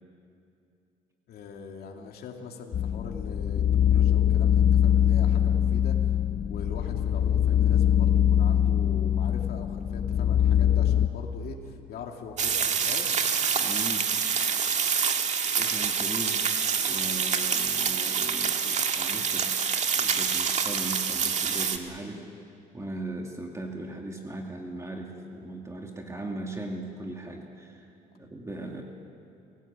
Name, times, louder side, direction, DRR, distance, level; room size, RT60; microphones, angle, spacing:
voice 1, 1.3-6.0 6.5-13.2, left 5 dB, 65° left, 2 dB, 2.6 m, -42 dB
sound 1, 2.7-11.1, left 10 dB, 45° left, 0.9 m, -23 dB
sound 2, 12.4-21.8, right 6 dB, 45° right, 1.8 m, -26 dB
voice 2, 13.6-14.1 15.6-16.5 16.8-19.5 20.0-22.3 22.7-27.9 28.2-28.8, right 2 dB, 15° right, 1 dB, 2.3 m, -38 dB
28.0 x 17.5 x 8.8 m, 2.6 s
cardioid pair, 110°, 17 cm